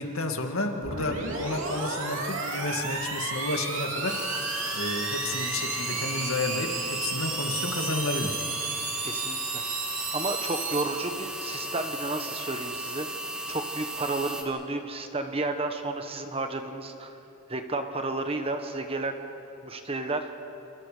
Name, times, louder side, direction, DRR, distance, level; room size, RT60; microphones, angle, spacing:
voice 1, 0.0-4.2 4.7-8.4, left 2 dB, 80° left, 4 dB, 2.1 m, -31 dB
sound 1, 0.8-10.8, right 4 dB, 65° right, 3.2 m, -33 dB
sound 2, 4.1-14.4, equal, 5° right, 1.6 m, -36 dB
voice 2, 9.0-9.6 10.1-13.1 13.5-17.1 17.5-19.2 19.6-20.2, right 2 dB, 25° right, 6 dB, 1.4 m, -32 dB
28.0 x 27.5 x 5.1 m, 3.0 s
head